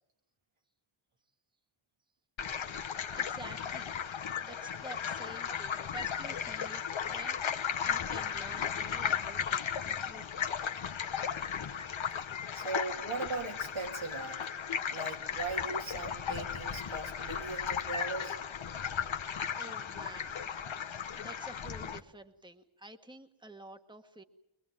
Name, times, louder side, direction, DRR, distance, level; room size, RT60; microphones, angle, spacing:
sound 1, 2.4-22.0, left 7 dB, 75° left, 1.1 m, -36 dB
voice 1, 2.8-3.9 4.4-7.4 7.8-10.6 19.5-20.7 21.1-24.2, right 2 dB, 10° right, 7 dB, 1.4 m, -50 dB
voice 2, 12.5-14.5 14.9-18.4, right 3 dB, 80° right, 2 dB, 3.0 m, -39 dB
23.0 x 21.5 x 9.1 m, 0.84 s
wide cardioid pair, 85°, 47 cm